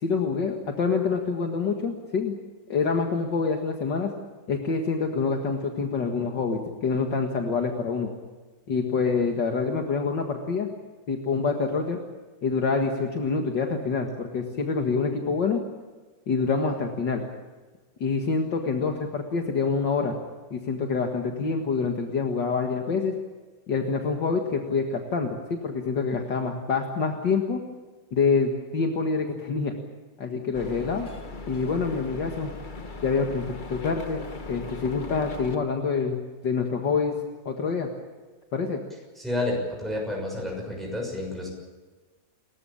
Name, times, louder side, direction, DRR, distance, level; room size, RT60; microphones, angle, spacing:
voice 1, 0.0-2.4 2.7-4.1 4.5-8.1 8.7-10.7 11.1-12.0 12.4-15.6 16.3-17.2 18.0-20.1 20.5-23.2 23.7-27.6 28.1-29.7 30.2-31.1 31.5-32.5 33.0-37.2 37.5-37.9 38.5-38.8, left 4 dB, 70° left, 3 dB, 2.4 m, -26 dB
sound 1, 30.5-35.6, left 3 dB, 30° left, 1.3 m, -39 dB
voice 2, 39.2-41.5, left 1 dB, ahead, -1 dB, 6.3 m, -30 dB
30.0 x 14.0 x 8.7 m, 1.3 s
omnidirectional pair, 2.0 m